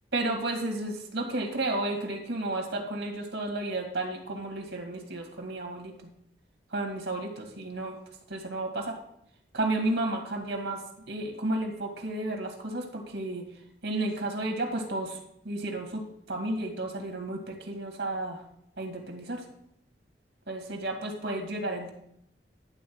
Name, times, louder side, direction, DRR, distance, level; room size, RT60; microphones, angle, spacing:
voice 1, 0.1-5.9 6.7-8.0 8.3-9.0 9.5-10.8 11.1-13.4 13.8-15.2 15.4-18.4 18.8-19.4 20.5-21.9, right 2 dB, 85° right, 3 dB, 2.1 m, -32 dB
11.5 x 4.0 x 7.6 m, 0.74 s
head